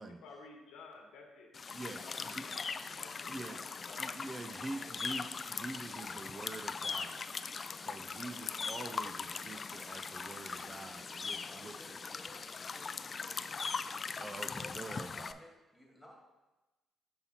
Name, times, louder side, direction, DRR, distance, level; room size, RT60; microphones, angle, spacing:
voice 1, 0.2-1.5 1.8-5.0 8.3-8.5 14.6-14.9, left 3 dB, 90° left, 1 dB, 1.2 m, -55 dB
sound 1, 1.5-15.3, left 5 dB, 40° left, 0.3 m, -40 dB
voice 2, 1.7-2.4 3.2-3.6 4.0-7.2 7.8-12.0 14.2-15.4, right 2 dB, 30° right, 7 dB, 0.4 m, -45 dB
voice 3, 11.4-13.4 14.8-16.1, equal, 5° left, -2 dB, 2.1 m, -57 dB
5.7 x 5.5 x 4.3 m, 1.1 s
cardioid pair, 90°, 0 cm